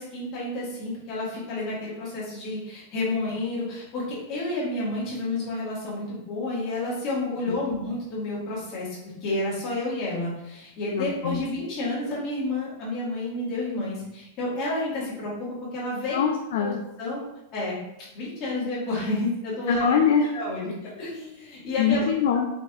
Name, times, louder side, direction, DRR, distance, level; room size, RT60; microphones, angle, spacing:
voice 1, 0.0-16.2 16.6-17.2 17.5-17.8 18.1-19.9 20.3-22.0, left 2 dB, 35° left, -7 dB, 1.4 m, -30 dB
voice 2, 10.9-11.4 16.1-16.8 19.7-20.3 21.8-22.5, left 7 dB, 65° left, 2 dB, 0.3 m, -23 dB
4.0 x 2.6 x 2.4 m, 0.88 s
supercardioid pair, 150°, 0 cm